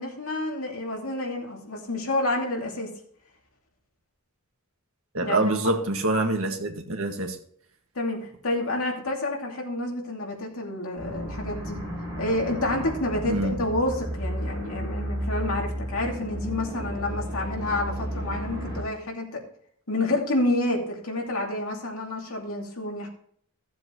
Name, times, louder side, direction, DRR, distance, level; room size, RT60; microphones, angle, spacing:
voice 1, 0.0-2.9 5.2-5.6 7.9-11.8 12.2-19.4 19.9-23.1, left 2 dB, 70° left, 2.6 m, -29 dB
voice 2, 5.1-7.4 13.3-13.6, right 2 dB, 70° right, 1.8 m, -25 dB
sound 1, 11.0-18.8, equal, 20° right, 5.1 m, -33 dB
15.5 x 7.5 x 3.0 m
head